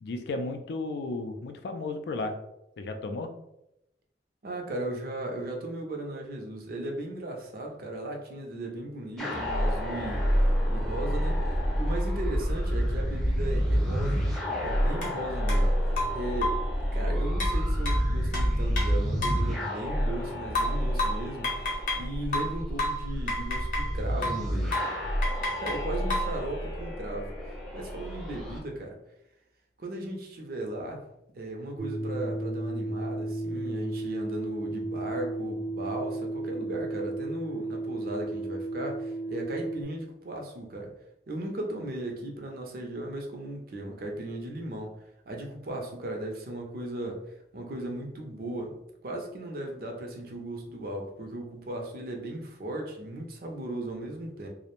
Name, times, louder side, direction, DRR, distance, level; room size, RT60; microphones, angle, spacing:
voice 1, 0.0-2.4 2.8-3.3, left 2 dB, 65° left, 7 dB, 0.3 m, -34 dB
voice 2, 4.4-10.2 10.7-14.3 14.6-15.7 16.1-16.6 16.9-24.8 25.6-27.3 27.7-29.0 29.8-31.1 31.3-40.9 41.3-45.0 45.3-47.2 47.5-54.5, right 1 dB, 50° right, 1 dB, 0.5 m, -36 dB
sound 1, 9.2-28.6, equal, 5° left, 0.5 m, -28 dB
sound 2, 15.0-15.1 15.5-15.6 16.0-16.7 17.4-19.5 20.6-22.1 22.3-23.9 24.2-24.5 24.7-25.0 25.2-26.4, left 1 dB, 45° left, 0.7 m, -31 dB
sound 3, 31.8-39.8, right 2 dB, 80° right, 0.7 m, -34 dB
2.5 x 2.0 x 2.9 m, 0.83 s
head